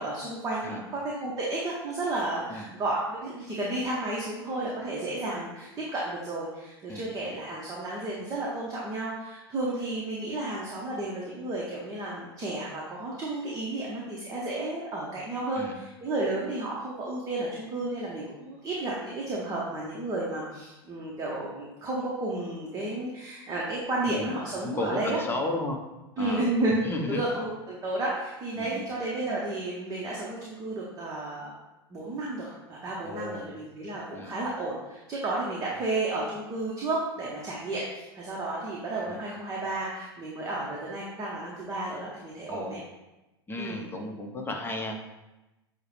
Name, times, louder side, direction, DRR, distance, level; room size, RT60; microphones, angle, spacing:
voice 1, 0.0-25.2 26.2-31.5 31.9-42.8 43.6-43.8, right 2 dB, 25° right, -4 dB, 0.8 m, -32 dB
voice 2, 24.0-24.4 24.6-25.8 26.2-26.5 26.8-27.2 28.6-28.7 33.0-33.5 34.1-34.3 39.1-39.2 42.5-42.8 43.5-45.1, left 2 dB, 15° left, 2 dB, 0.7 m, -33 dB
6.3 x 2.1 x 3.1 m, 1.0 s
hypercardioid pair, 90°, 14 cm